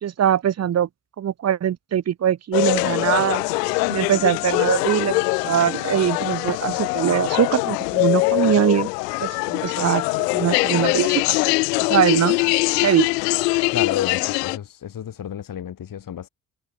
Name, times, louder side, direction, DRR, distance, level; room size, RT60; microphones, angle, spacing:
voice 1, 0.0-0.9 1.2-3.4 3.9-8.9 9.2-11.4 11.9-13.1, right 10 dB, 30° right, 0.8 m, -22 dB
sound 1, 2.5-14.6, left 26 dB, 70° left, 1.8 m, -22 dB
voice 2, 13.7-16.3, left 9 dB, 40° left, 1.7 m, -31 dB
figure-of-eight pair, 40°, 50 cm